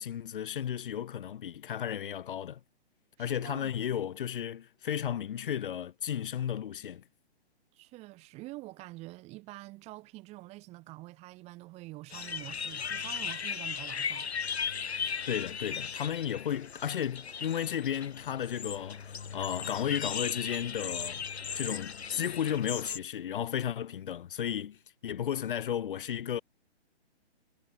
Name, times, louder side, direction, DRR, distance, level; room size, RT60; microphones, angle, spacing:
voice 1, 0.0-2.6 3.2-7.0 15.3-21.2 21.6-26.4, left 9 dB, 50° left, 5.5 m, -34 dB
voice 2, 3.2-3.7 7.7-14.3, right 20 dB, 20° right, 3.9 m, -46 dB
sound 1, 12.1-23.0, left 6 dB, 70° left, 7.4 m, -37 dB
hypercardioid pair, 155°, 33 cm